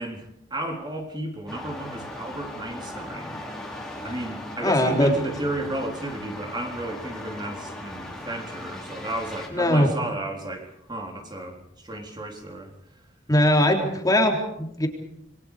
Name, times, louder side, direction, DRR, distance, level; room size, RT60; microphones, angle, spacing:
voice 1, 0.0-3.4 4.0-12.7, right 1 dB, 25° right, 2 dB, 3.8 m, -33 dB
sound 1, 1.5-9.5, left 1 dB, 5° left, 4.7 m, -38 dB
voice 2, 4.6-5.1 9.5-9.9 13.3-14.9, left 1 dB, 20° left, 2 dB, 3.7 m, -20 dB
28.0 x 23.0 x 5.1 m, 0.74 s
head